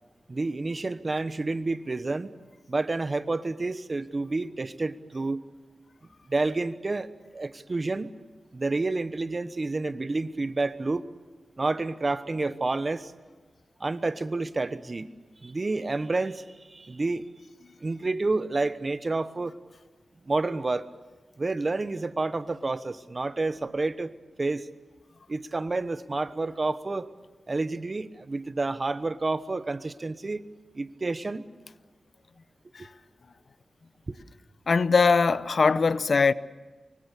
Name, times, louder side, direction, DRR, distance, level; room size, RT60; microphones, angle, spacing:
voice 1, 0.3-2.3 2.7-5.4 6.3-8.1 8.5-11.1 11.6-13.1 13.8-15.1 15.4-17.2 17.8-19.5 20.2-20.9 21.4-24.1 24.4-24.7 25.3-27.1 27.5-30.5 30.7-31.5 34.1-34.2, right 3 dB, 40° right, 1.1 m, -29 dB
voice 2, 34.7-36.3, left 4 dB, 65° left, 0.7 m, -21 dB
24.5 x 24.0 x 6.8 m
wide cardioid pair, 75°, 0 cm